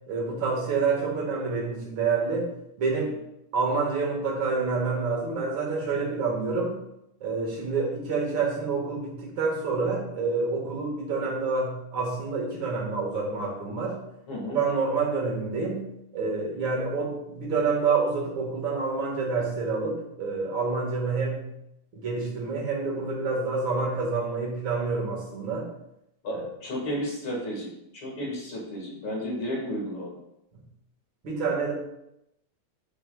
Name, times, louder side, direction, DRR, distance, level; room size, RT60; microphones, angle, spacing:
voice 1, 0.1-2.5 2.8-3.2 3.5-6.8 7.2-14.0 14.5-21.5 21.9-25.7 26.3-26.4 31.2-31.7, right 4 dB, 70° right, -1 dB, 2.4 m, -28 dB
voice 2, 14.3-14.6 26.2-30.2, equal, 80° left, -2 dB, 2.6 m, -33 dB
10.5 x 5.4 x 2.3 m, 0.83 s
omnidirectional pair, 2.3 m